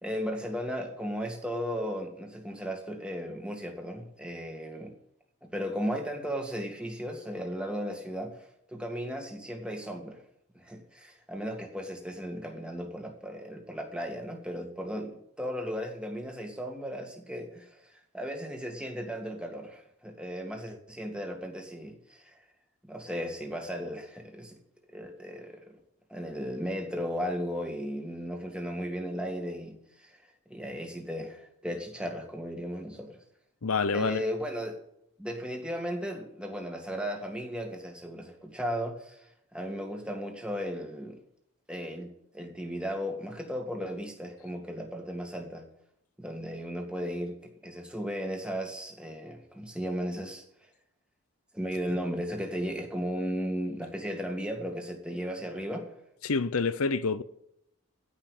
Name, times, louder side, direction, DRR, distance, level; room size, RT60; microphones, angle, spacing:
voice 1, 0.0-4.9 5.5-8.3 8.7-10.2 10.5-17.8 18.1-22.3 22.8-24.6 24.9-25.8 26.1-30.2 30.5-33.2 33.9-34.8 35.2-41.2 41.7-45.6 46.2-50.4 51.5-55.9, equal, 5° right, 1.9 m, -35 dB
voice 2, 33.6-34.2 56.2-57.2, left 4 dB, 80° left, 0.7 m, -27 dB
16.0 x 5.7 x 9.9 m
head